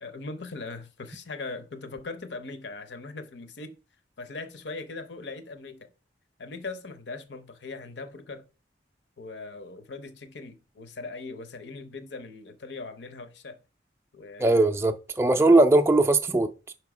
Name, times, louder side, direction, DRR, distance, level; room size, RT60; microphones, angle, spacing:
voice 1, 0.0-3.8 4.2-5.9 6.4-8.4 9.2-13.6 14.1-14.6 15.3-15.6, left 3 dB, 65° left, 0.7 m, -40 dB
voice 2, 14.4-16.7, right 2 dB, 15° right, 0.3 m, -20 dB
5.5 x 4.6 x 4.8 m
head